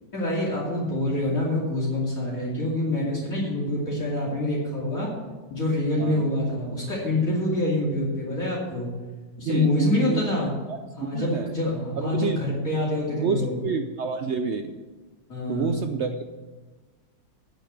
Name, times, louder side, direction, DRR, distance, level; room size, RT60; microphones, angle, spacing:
voice 1, 0.1-5.1 5.5-8.9 9.4-10.5 11.0-13.5 15.3-15.8, left 1 dB, 55° left, -6 dB, 3.1 m, -26 dB
voice 2, 6.0-6.3 9.4-10.3 10.7-11.6 12.0-12.4 13.2-14.8 15.5-16.3, right 5 dB, 70° right, 7 dB, 0.6 m, -29 dB
9.2 x 6.8 x 8.0 m, 1.3 s
omnidirectional pair, 1.7 m